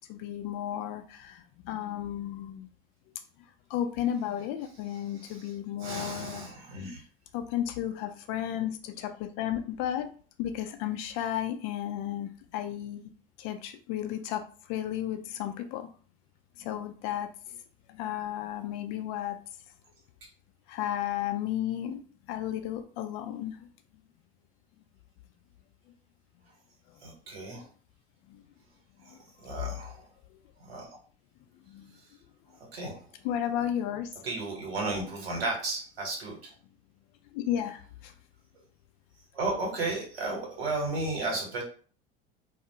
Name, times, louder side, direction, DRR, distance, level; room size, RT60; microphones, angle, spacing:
voice 1, 0.1-2.7 3.7-6.5 6.9-7.0 7.3-10.1 10.4-13.0 13.4-14.4 14.7-15.9 16.6-17.3 17.9-19.4 20.7-22.0 22.3-23.6 28.3-28.4 29.1-29.2 31.7-31.9 33.2-34.1 37.3-38.1, left 11 dB, 50° left, 7 dB, 0.4 m, -33 dB
voice 2, 5.8-7.0 27.0-27.6 29.4-30.1 30.7-30.8 32.7-33.0 34.2-36.5 39.3-41.6, right 2 dB, 80° right, 0 dB, 1.1 m, -33 dB
2.4 x 2.0 x 2.8 m, 0.42 s
hypercardioid pair, 85°, 30 cm